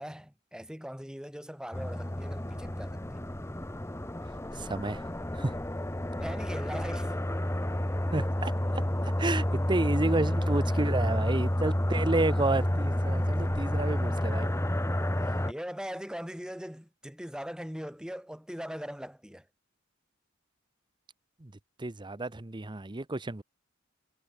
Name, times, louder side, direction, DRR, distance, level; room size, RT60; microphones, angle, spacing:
voice 1, 0.0-3.2 6.1-7.2 15.5-19.5, equal, 5° right, 4.6 m, -40 dB
sound 1, 1.7-15.5, left 1 dB, 15° left, 1.2 m, -30 dB
voice 2, 4.6-5.0 5.4-5.5 8.1-8.5 9.2-14.5 21.4-21.5 21.8-23.4, right 2 dB, 20° right, 0.8 m, -30 dB
head